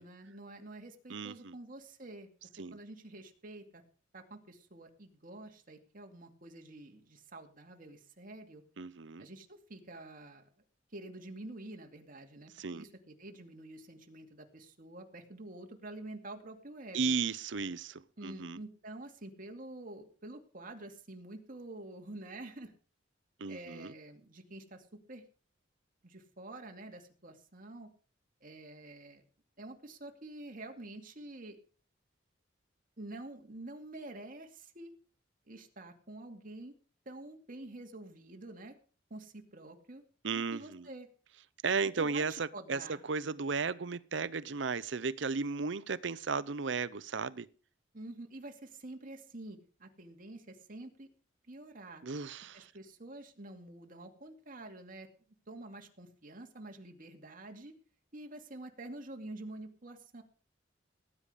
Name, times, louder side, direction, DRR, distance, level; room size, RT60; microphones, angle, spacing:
voice 1, 0.0-2.3 2.7-3.8 4.1-8.6 9.2-10.5 10.9-17.1 18.2-22.7 23.5-25.2 26.0-27.9 28.4-29.2 29.6-31.6 33.0-34.9 35.5-36.7 37.1-38.7 39.1-40.0 40.3-41.1 42.0-43.0 47.9-51.1 51.5-52.0 52.5-55.1 55.5-57.7 58.1-60.2, right 2 dB, 45° right, 2.5 m, -48 dB
voice 2, 1.1-1.5 2.6-2.8 8.8-9.3 12.6-12.9 16.9-18.6 23.4-23.9 40.2-40.9 41.6-47.5 52.0-52.7, right 5 dB, 70° right, 0.7 m, -35 dB
18.5 x 9.9 x 5.1 m
head